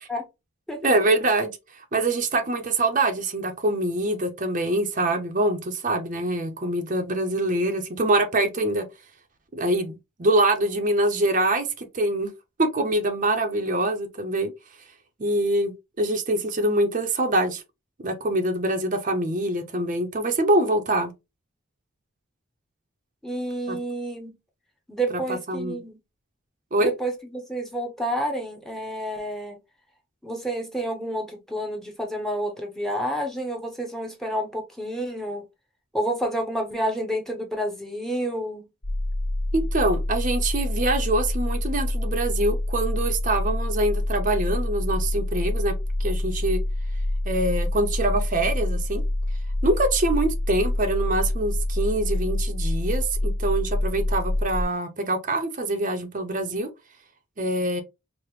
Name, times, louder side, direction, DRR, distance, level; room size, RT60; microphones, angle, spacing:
voice 1, 0.8-8.8 9.5-12.3 12.6-14.5 15.2-17.6 18.0-21.1 23.7-23.8 25.3-25.8 26.7-26.9 39.5-45.7 46.0-46.6 47.3-49.0 49.6-56.7 57.4-57.8, right 1 dB, 35° right, 0.6 m, -24 dB
voice 2, 23.2-24.3 24.9-26.0 26.8-29.6 30.2-35.4 35.9-38.6, right 1 dB, ahead, 0.7 m, -29 dB
sound 1, 38.8-54.6, left 1 dB, 60° left, 1.4 m, -26 dB
4.8 x 2.0 x 3.0 m
head